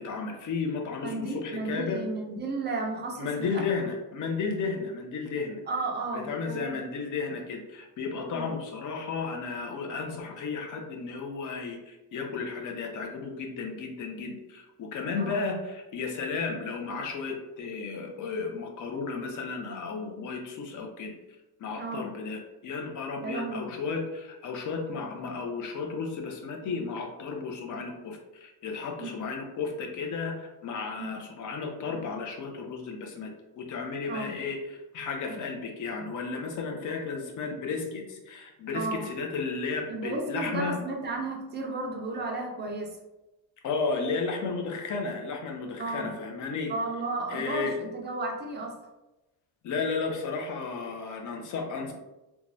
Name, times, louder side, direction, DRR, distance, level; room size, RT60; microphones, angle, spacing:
voice 1, 0.0-2.0 3.2-5.6 6.1-21.1 21.6-34.6 34.9-40.8 43.6-46.7 47.3-47.8 49.6-51.9, left 4 dB, 45° left, 2 dB, 0.6 m, -33 dB
voice 2, 1.0-3.6 5.7-6.8 8.3-8.5 15.2-15.4 21.8-22.1 23.2-23.7 29.0-29.1 31.0-31.2 34.1-34.3 35.3-35.4 38.7-39.1 39.9-43.0 45.8-46.1 46.7-48.8, right 2 dB, 25° right, 1 dB, 0.3 m, -33 dB
3.0 x 2.3 x 2.6 m, 1.0 s
cardioid pair, 130°, 44 cm